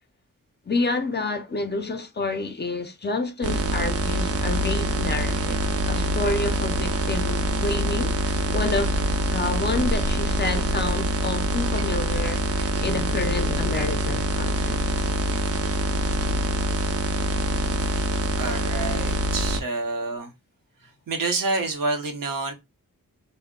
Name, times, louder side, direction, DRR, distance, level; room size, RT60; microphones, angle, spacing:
voice 1, 0.7-5.6 5.9-15.1, left 3 dB, 30° left, 0.4 m, -29 dB
sound 1, 3.4-19.6, right 1 dB, 45° right, 0.4 m, -25 dB
voice 2, 18.4-20.3 21.1-22.5, right 3 dB, 80° right, 0.8 m, -28 dB
2.1 x 2.0 x 3.5 m
wide cardioid pair, 75°, 33 cm